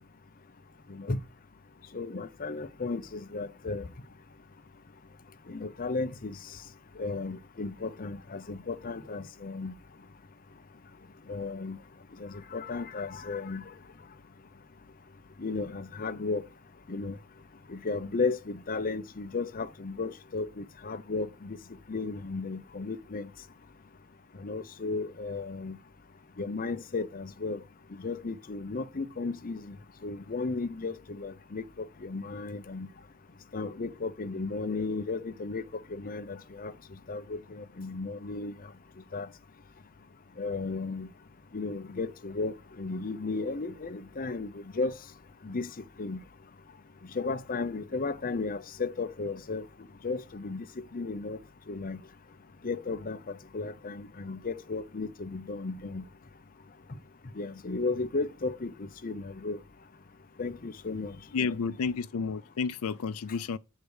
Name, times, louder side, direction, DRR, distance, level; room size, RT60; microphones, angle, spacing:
voice 1, 1.9-3.8 5.5-6.4 7.0-9.7 11.3-11.8 12.2-13.6 15.4-16.4 16.9-17.2 17.7-21.6 21.9-23.3 24.4-25.8 26.4-27.6 28.0-29.7 30.0-32.9 33.5-35.6 35.9-36.7 37.1-38.5 39.1-39.3 40.4-41.1 41.5-44.9 45.4-45.7 46.0-46.2 47.1-49.6 50.0-50.6 50.9-51.4 51.7-52.0 52.6-56.0 57.4-58.7 59.0-59.6 60.4-61.2, left 3 dB, 40° left, 0.7 m, -34 dB
voice 2, 61.3-63.6, left 5 dB, 70° left, 0.4 m, -31 dB
8.2 x 5.0 x 6.3 m
head